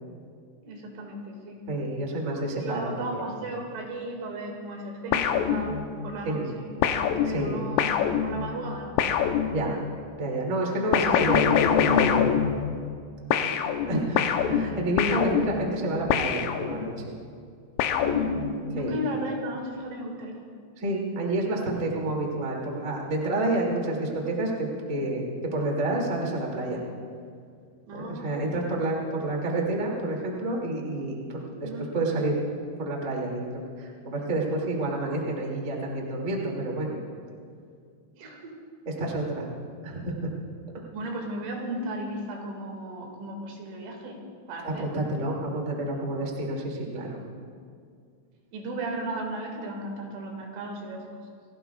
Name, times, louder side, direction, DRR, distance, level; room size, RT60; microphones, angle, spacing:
voice 1, 0.6-1.7 2.6-5.8 6.0-6.7 7.3-9.0 13.3-13.6 17.9-20.5 27.9-28.4 31.6-32.0 38.1-38.6 40.9-44.2 44.5-44.9 48.5-51.1, right 1 dB, 80° right, 1 dB, 4.5 m, -35 dB
voice 2, 1.7-3.2 6.2-6.5 7.2-7.7 9.5-9.8 10.2-12.4 13.8-17.1 18.7-19.0 20.8-26.8 27.9-32.4 32.8-37.0 39.0-39.5 39.8-40.3 44.6-47.2, right 1 dB, 30° right, -2 dB, 1.5 m, -29 dB
sound 1, 5.1-6.1 6.8-10.0 10.9-13.0 13.3-17.1 17.8-18.8, left 8 dB, 85° left, 3.3 m, -25 dB
29.0 x 17.5 x 2.4 m, 2.2 s
omnidirectional pair, 5.6 m